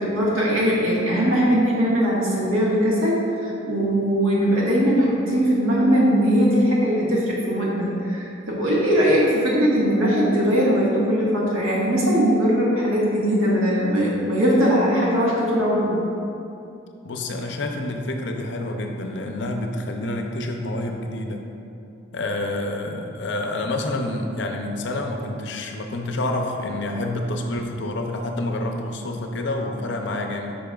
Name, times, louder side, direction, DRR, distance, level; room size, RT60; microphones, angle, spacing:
voice 1, 0.0-16.0, equal, 85° right, -5 dB, 1.5 m, -20 dB
voice 2, 17.0-21.4 22.1-30.6, left 1 dB, 60° left, 3 dB, 0.5 m, -28 dB
8.6 x 5.3 x 2.3 m, 2.7 s
head